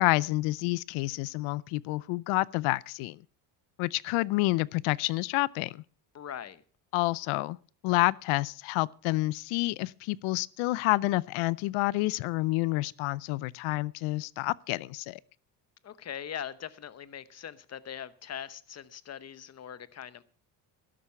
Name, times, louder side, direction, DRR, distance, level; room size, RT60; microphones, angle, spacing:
voice 1, 0.0-3.2 3.8-5.8 6.9-7.6 7.8-15.2, left 21 dB, 75° left, 0.6 m, -29 dB
voice 2, 6.1-6.6 15.8-20.2, left 9 dB, 30° left, 0.9 m, -41 dB
12.5 x 11.5 x 5.7 m
cardioid pair, 110°, 48 cm